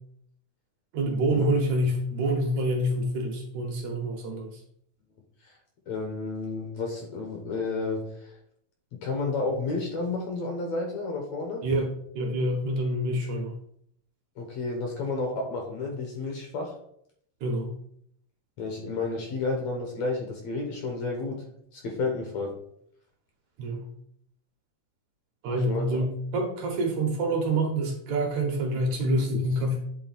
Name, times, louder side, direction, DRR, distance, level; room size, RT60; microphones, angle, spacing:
voice 1, 0.9-4.6 11.6-13.6 17.4-17.7 23.6-23.9 25.4-29.8, right 1 dB, 70° right, 1 dB, 2.0 m, -27 dB
voice 2, 5.9-8.3 8.9-11.6 14.4-16.7 18.6-21.4 21.7-22.6 25.7-26.0, left 3 dB, 65° left, 2 dB, 1.8 m, -31 dB
8.5 x 3.8 x 4.0 m, 0.69 s
omnidirectional pair, 3.9 m